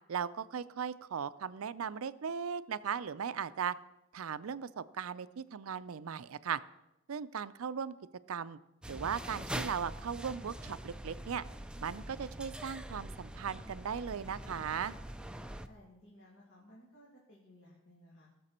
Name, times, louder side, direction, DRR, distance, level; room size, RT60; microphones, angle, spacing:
voice 1, 0.1-3.8 4.1-6.6 7.1-7.9 8.3-8.6 8.9-11.4 11.8-14.9, right 7 dB, 75° right, 15 dB, 0.5 m, -37 dB
sound 1, 8.8-15.7, right 1 dB, 5° right, 0.4 m, -44 dB
voice 2, 15.7-18.3, left 1 dB, 60° left, -5 dB, 2.5 m, -58 dB
19.0 x 6.9 x 4.3 m, 0.92 s
head